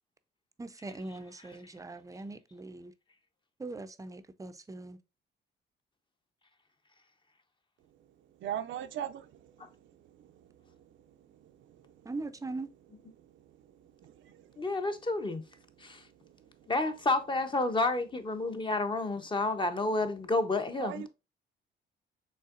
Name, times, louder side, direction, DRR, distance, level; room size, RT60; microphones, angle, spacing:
voice 1, 0.6-2.9 3.6-5.0 12.0-12.7, right 2 dB, 15° right, 0.5 m, -41 dB
voice 2, 8.4-9.2 20.8-21.1, right 10 dB, 70° right, 0.5 m, -36 dB
voice 3, 14.6-15.4 15.8-16.0 16.7-21.1, left 2 dB, 25° left, 0.7 m, -30 dB
5.5 x 3.4 x 2.4 m
cardioid pair, 90°, 20 cm